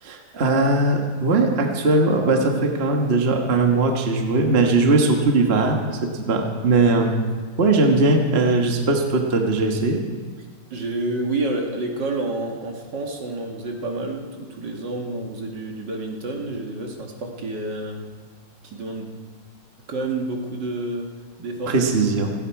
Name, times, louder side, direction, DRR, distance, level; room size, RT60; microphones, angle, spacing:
voice 1, 0.0-7.2 7.6-10.0 21.7-22.3, right 3 dB, 35° right, 2 dB, 1.4 m, -19 dB
voice 2, 10.7-18.1 18.6-19.1 19.9-21.1 21.4-22.0, right 2 dB, 55° right, 1 dB, 2.3 m, -29 dB
17.5 x 16.0 x 4.7 m, 1.5 s
omnidirectional pair, 2.4 m